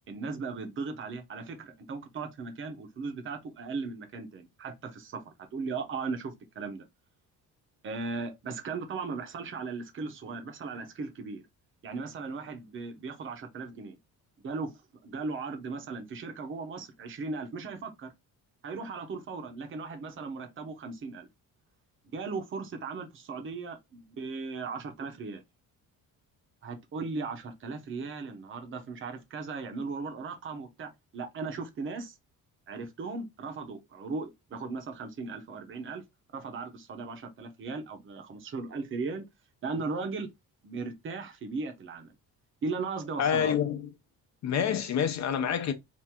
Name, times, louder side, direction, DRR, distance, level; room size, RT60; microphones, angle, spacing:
voice 1, 0.1-6.8 7.8-11.4 11.8-14.0 14.4-14.7 15.0-18.1 18.6-21.3 22.1-25.4 26.6-32.1 32.7-36.0 36.3-39.3 39.6-40.3 40.6-42.1 42.6-43.5, right 4 dB, 35° right, 0.7 m, -37 dB
voice 2, 43.2-43.9 44.4-45.7, left 8 dB, 50° left, 0.7 m, -27 dB
3.0 x 2.5 x 3.5 m
cardioid pair, 155°, 35 cm